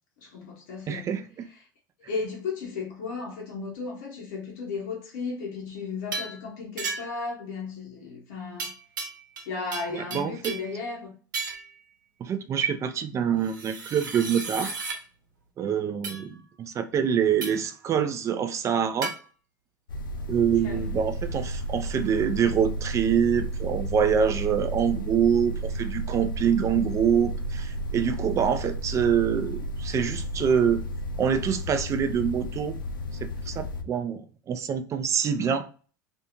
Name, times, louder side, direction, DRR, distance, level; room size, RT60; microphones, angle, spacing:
voice 1, 0.2-1.1 1.5-1.7 2.1-8.7 9.5-11.2 20.6-20.8, left 4 dB, 60° left, 0.7 m, -35 dB
voice 2, 0.9-1.5 9.9-10.5 12.2-14.7 15.6-19.1 20.3-30.8 31.2-32.8 33.5-34.2 34.5-35.7, right 7 dB, 30° right, 0.4 m, -25 dB
sound 1, 6.1-6.4 6.8-7.3 8.6-9.5 9.7-10.7 11.3-11.7 13.4-15.0 16.0-16.2 17.4-17.7 19.0-19.2, right 4 dB, 75° right, 0.6 m, -34 dB
sound 2, 19.9-33.8, right 1 dB, 80° left, 0.4 m, -32 dB
2.5 x 2.3 x 2.8 m
figure-of-eight pair, 75°, 11 cm